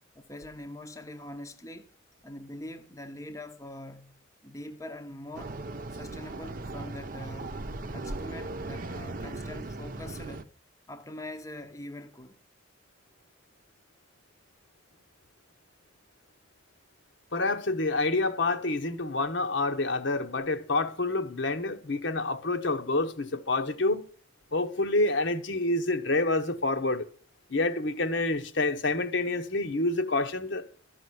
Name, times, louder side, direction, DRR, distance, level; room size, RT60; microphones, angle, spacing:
voice 1, 0.1-1.9 2.2-5.6 5.9-10.5 10.9-12.4, left 1 dB, 15° left, 0.8 m, -43 dB
sound 1, 5.3-10.4, right 2 dB, 40° right, 0.7 m, -38 dB
voice 2, 17.3-24.1 24.5-27.1 27.5-30.7, left 2 dB, 60° left, 1.1 m, -28 dB
13.5 x 6.0 x 9.5 m
head